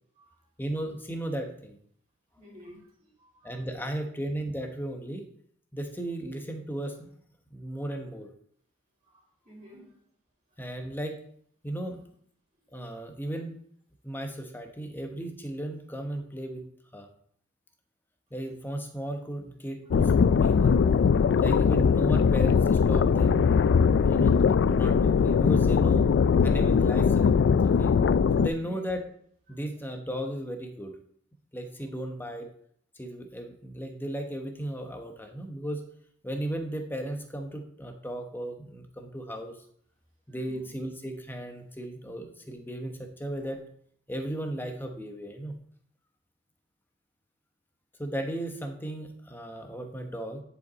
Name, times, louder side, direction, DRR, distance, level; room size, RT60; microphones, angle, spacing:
voice 1, 0.6-1.8 3.4-5.3 5.7-7.1 7.5-8.3 10.6-11.2 11.6-12.0 12.7-13.6 14.0-16.7 16.9-17.1 18.3-20.8 21.4-23.4 23.9-24.4 24.7-26.1 26.4-27.4 27.6-27.9 28.4-29.1 29.5-30.9 31.5-32.5 32.9-35.8 36.2-39.6 40.3-43.6 44.1-45.5 48.0-50.4, right 1 dB, 10° left, 4 dB, 1.0 m, -35 dB
voice 2, 2.3-3.5 9.1-9.2 9.4-9.9 23.8-24.0 28.6-28.8 40.3-40.7, equal, 30° right, -10 dB, 3.4 m, -51 dB
sound 1, 19.9-28.5, left 6 dB, 60° left, 0.3 m, -21 dB
10.0 x 5.5 x 4.0 m, 0.63 s
head